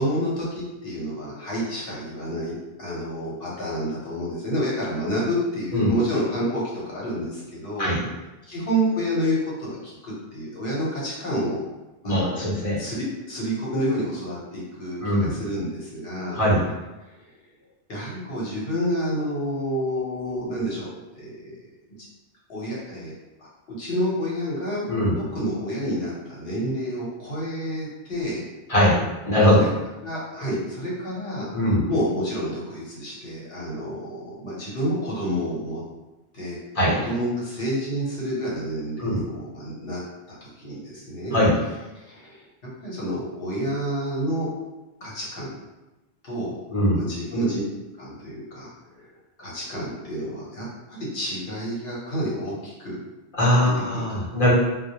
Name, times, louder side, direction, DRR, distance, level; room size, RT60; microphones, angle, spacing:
voice 1, 0.0-7.9 8.5-11.6 12.0-12.2 12.8-16.4 17.9-20.9 21.1-21.5 22.5-23.1 23.4-23.5 23.8-24.8 25.2-28.4 29.5-29.7 30.0-31.5 31.9-35.8 36.3-36.6 37.0-40.0 40.3-41.4 42.0-42.4 42.8-44.5 45.0-45.5 46.2-46.5 46.9-47.6 48.0-49.1 49.4-53.0 53.6-54.0, equal, 60° left, -6 dB, 0.9 m, -29 dB
voice 2, 12.0-12.8 15.0-15.3 16.3-16.6 24.9-25.1 28.7-29.0 29.2-29.6 31.5-31.9 36.7-37.0 39.0-39.2 41.3-41.5 46.7-47.0 53.3-54.5, equal, 35° left, -6 dB, 0.7 m, -20 dB
2.1 x 2.1 x 2.7 m, 1.0 s
omnidirectional pair, 1.1 m